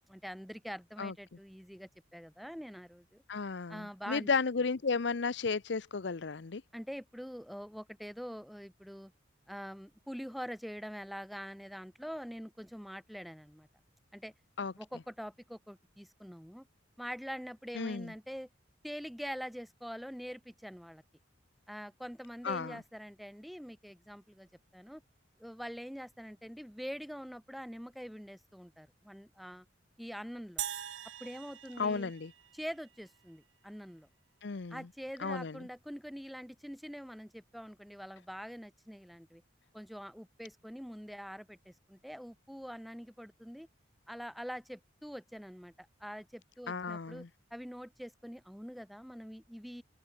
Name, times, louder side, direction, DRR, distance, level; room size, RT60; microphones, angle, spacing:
voice 1, 0.1-3.2 3.7-4.3 6.7-9.1 9.5-13.7 14.1-14.3 14.8-16.7 17.0-18.5 18.8-21.0 21.7-25.0 25.4-29.7 30.0-30.6 31.2-32.1 32.5-34.1 34.7-39.4 39.7-43.7 44.1-47.3 47.5-49.8, equal, ahead, 4.4 m, -44 dB
voice 2, 3.3-6.6 14.6-14.7 17.8-18.1 22.4-22.8 31.8-32.3 34.4-34.8 35.2-35.6 46.7-47.3, left 4 dB, 60° left, 0.6 m, -33 dB
sound 1, 30.6-33.0, right 11 dB, 75° right, 0.9 m, -42 dB
head